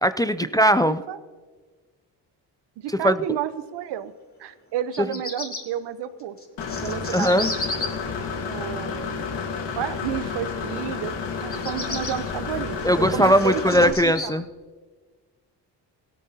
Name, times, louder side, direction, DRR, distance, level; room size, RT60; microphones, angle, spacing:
voice 1, 0.0-1.0 3.0-3.2 7.1-7.5 12.8-14.5, equal, 10° left, 11 dB, 0.4 m, -19 dB
voice 2, 0.9-1.2 2.8-4.1 4.4-6.4 6.6-7.8 8.4-9.3 9.8-11.1 11.4-14.4, right 10 dB, 70° right, 13 dB, 0.8 m, -31 dB
Bird vocalization bird call bird song, 4.8-5.6 6.4-7.9 11.4-12.1 12.8-14.3, left 2 dB, 30° left, 3.0 m, -32 dB
Engine / Mechanisms, 6.6-13.9, left 5 dB, 80° left, 1.7 m, -30 dB
17.0 x 13.5 x 2.8 m, 1.4 s
supercardioid pair, 60°, 43 cm